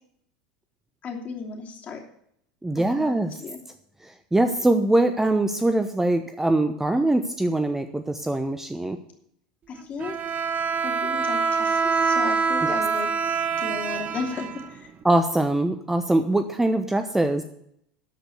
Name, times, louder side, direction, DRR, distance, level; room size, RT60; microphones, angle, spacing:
voice 1, 1.0-2.0 2.7-3.6 9.7-10.4 10.8-13.1 13.6-14.9, left 5 dB, 35° left, 1 dB, 3.0 m, -35 dB
voice 2, 2.6-3.3 4.3-9.0 12.6-12.7 15.0-17.4, right 2 dB, 10° right, 8 dB, 0.8 m, -22 dB
Bowed string instrument, 10.0-15.0, right 5 dB, 35° right, 0.8 m, -25 dB
12.5 x 5.2 x 7.9 m, 0.71 s
hypercardioid pair, 85°, 4 cm